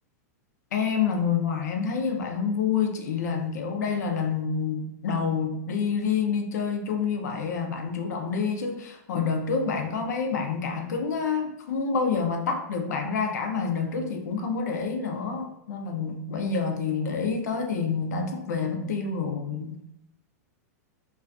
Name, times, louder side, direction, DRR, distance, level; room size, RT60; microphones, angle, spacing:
voice 1, 0.7-19.8, left 5 dB, 85° left, 4 dB, 0.5 m, -28 dB
2.4 x 2.2 x 2.4 m, 0.81 s
supercardioid pair, 145°, 9 cm